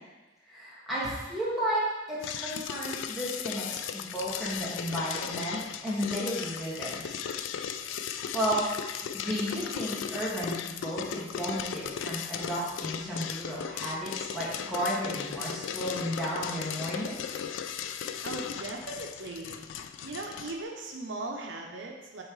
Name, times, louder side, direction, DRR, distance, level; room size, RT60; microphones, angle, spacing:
voice 1, 0.5-7.3 8.3-17.2, equal, ahead, -10 dB, 1.9 m, -33 dB
sound 1, 2.2-20.6, left 8 dB, 85° left, 0.3 m, -37 dB
voice 2, 18.2-19.6 20.0-22.2, right 2 dB, 80° right, 1 dB, 0.7 m, -38 dB
7.7 x 4.4 x 3.2 m, 1.1 s
head